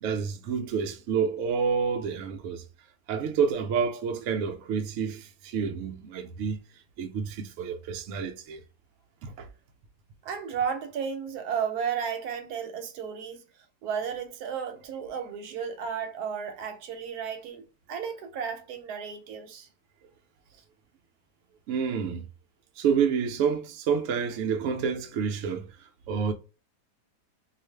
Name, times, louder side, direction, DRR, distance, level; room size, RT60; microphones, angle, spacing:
voice 1, 0.0-2.6 3.1-6.6 7.0-8.6 9.2-9.5 21.7-22.2 22.8-25.7 26.1-26.3, right 6 dB, 90° right, 0.6 m, -28 dB
voice 2, 10.2-13.4 13.8-17.6 17.9-19.7, right 7 dB, 75° right, 1.0 m, -33 dB
2.5 x 2.4 x 3.2 m
omnidirectional pair, 1.8 m